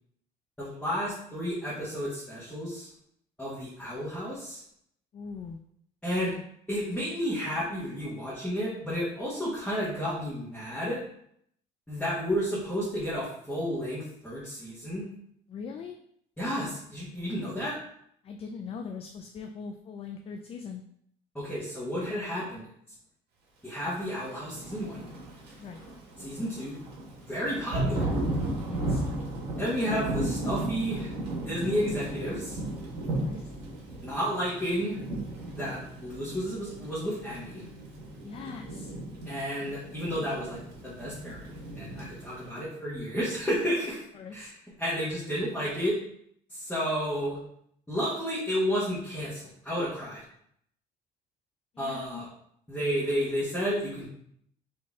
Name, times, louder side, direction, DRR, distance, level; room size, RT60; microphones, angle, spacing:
voice 1, 0.6-2.9 3.4-4.6 6.0-6.4 6.7-11.0 11.9-15.1 16.4-17.8 21.3-22.6 23.6-25.1 26.2-26.8 27.3-28.1 29.6-31.1 31.4-32.6 34.0-35.0 35.6-37.7 39.3-44.0 44.3-44.5 44.8-46.0 46.5-47.4 47.9-50.2 51.8-52.3 52.7-54.1, equal, 5° left, -9 dB, 1.4 m, -32 dB
voice 2, 5.1-5.6 15.5-16.0 18.2-20.8 25.6-25.8 28.7-29.0 33.0-33.5 38.2-38.9 44.1-44.5 51.7-52.2, left 5 dB, 35° left, 4 dB, 0.4 m, -41 dB
Thunder / Rain, 24.4-42.5, right 1 dB, 75° right, 1.5 m, -35 dB
4.3 x 3.2 x 3.5 m, 0.70 s
cardioid pair, 115°, 17 cm